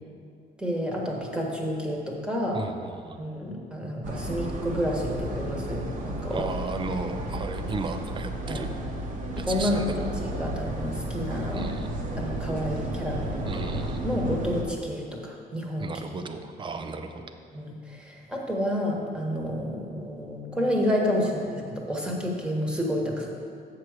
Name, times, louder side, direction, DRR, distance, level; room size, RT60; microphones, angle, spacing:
voice 1, 0.6-2.7 3.2-6.5 8.5-8.6 9.4-11.7 12.2-15.9 16.3-16.4 17.5-23.3, equal, 5° right, -1 dB, 1.3 m, -30 dB
voice 2, 2.5-3.2 6.3-8.7 9.4-9.8 11.5-11.8 13.5-14.0 15.8-17.3, right 4 dB, 30° right, 7 dB, 0.6 m, -34 dB
sound 1, 4.0-14.6, right 1 dB, 50° right, 1.1 m, -33 dB
7.3 x 4.8 x 6.5 m, 2.4 s
cardioid pair, 110°, 17 cm